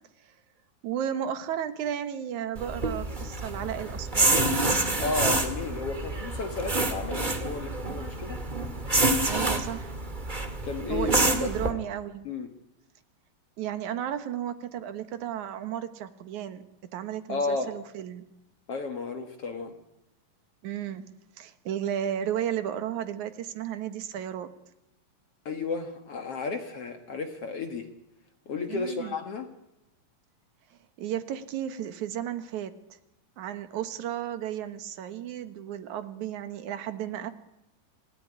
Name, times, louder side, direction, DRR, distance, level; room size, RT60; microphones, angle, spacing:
voice 1, 0.8-4.5 9.3-9.9 10.9-12.3 13.6-16.6 16.9-18.2 20.6-21.1 21.4-24.5 28.7-29.1 31.0-32.8 33.4-37.3, right 10 dB, 65° right, 10 dB, 2.5 m, -33 dB
sound 1, 2.5-11.7, right 2 dB, 20° right, 1.4 m, -27 dB
voice 2, 5.0-8.4 10.6-11.7 12.3-12.5 17.3-17.7 18.7-19.7 25.5-27.9 28.5-29.5, left 4 dB, 55° left, 6 dB, 2.0 m, -33 dB
27.0 x 17.5 x 9.9 m, 0.90 s
omnidirectional pair, 4.1 m